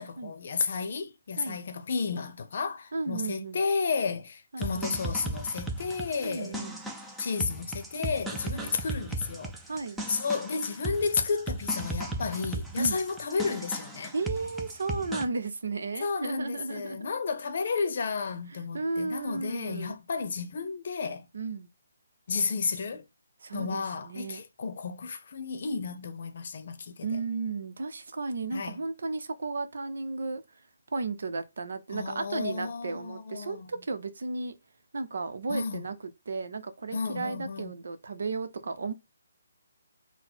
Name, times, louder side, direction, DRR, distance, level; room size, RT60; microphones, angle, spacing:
voice 1, 0.0-6.6 7.2-9.5 10.1-14.1 16.0-21.3 22.3-23.0 23.5-27.2 28.5-28.8 31.9-33.7 35.5-35.8 36.9-37.8, left 5 dB, 55° left, 0.7 m, -32 dB
voice 2, 2.9-3.6 4.5-5.4 6.2-6.8 8.5-8.7 9.7-10.0 12.8-13.0 14.1-17.1 18.5-20.0 21.3-21.7 23.4-24.4 27.0-30.6 30.9-34.5 34.9-36.0 36.3-38.9, right 3 dB, 70° right, 0.8 m, -34 dB
sound 1, 4.6-15.2, right 2 dB, 5° right, 0.5 m, -37 dB
3.9 x 2.1 x 4.3 m
hypercardioid pair, 150°, 0 cm